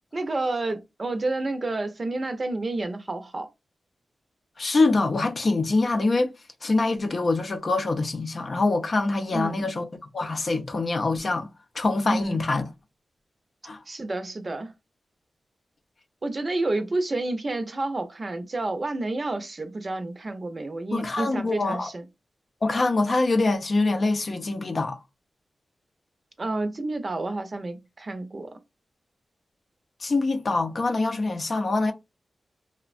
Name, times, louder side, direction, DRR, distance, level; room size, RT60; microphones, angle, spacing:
voice 1, 0.1-3.5 9.3-9.6 12.1-12.4 13.9-14.7 16.2-22.1 26.4-28.6, right 2 dB, 45° right, 0.6 m, -30 dB
voice 2, 4.6-6.3 6.6-9.9 10.1-11.5 11.7-12.6 13.6-13.8 20.9-21.9 22.6-25.0 30.0-31.9, left 3 dB, 55° left, 0.5 m, -24 dB
3.2 x 2.1 x 2.4 m
cardioid pair, 55°, 0 cm